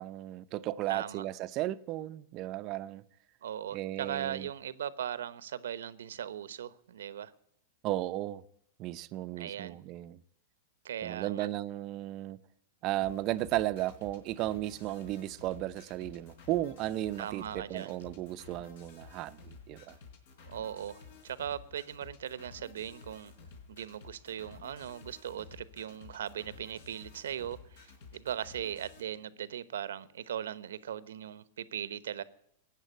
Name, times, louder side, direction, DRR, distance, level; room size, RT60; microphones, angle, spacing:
voice 1, 0.0-3.0 3.7-4.5 7.8-8.4 8.8-10.2 11.0-12.4 12.8-20.0, right 15 dB, 40° right, 0.6 m, -35 dB
voice 2, 0.9-1.2 3.4-7.3 9.4-9.8 10.8-11.5 17.2-18.0 20.5-23.3 23.7-32.2, right 9 dB, 85° right, 0.9 m, -39 dB
sound 1, 13.0-29.0, left 4 dB, 70° left, 4.2 m, -53 dB
15.0 x 9.1 x 9.1 m
hypercardioid pair, 135°, 0 cm